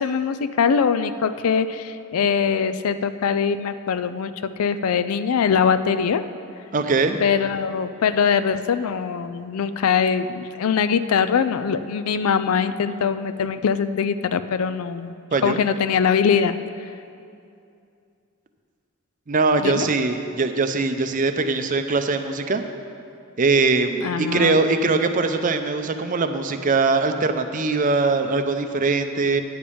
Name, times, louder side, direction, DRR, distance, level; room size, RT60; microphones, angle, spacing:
voice 1, 0.0-4.3 4.6-6.2 7.2-15.1 15.4-16.6 19.6-19.9 24.0-24.6, left 6 dB, 85° left, 12 dB, 0.4 m, -22 dB
voice 2, 6.7-7.2 15.3-15.6 19.3-22.6 23.4-29.4, right 3 dB, 40° right, 7 dB, 0.5 m, -21 dB
10.0 x 5.0 x 7.0 m, 2.5 s
head